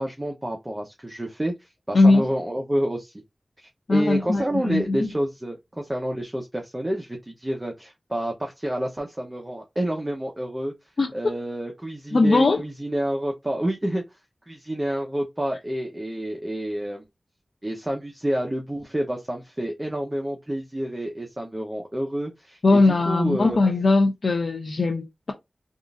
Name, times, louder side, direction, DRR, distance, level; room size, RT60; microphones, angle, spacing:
voice 1, 0.0-3.2 3.6-10.7 11.1-14.2 14.5-17.0 17.6-23.6, right 1 dB, 20° right, 0.7 m, -29 dB
voice 2, 1.9-2.3 3.9-5.1 11.0-11.1 12.1-12.6 22.6-25.3, left 3 dB, 75° left, 0.5 m, -20 dB
3.6 x 2.4 x 2.4 m
wide cardioid pair, 65°, 0 cm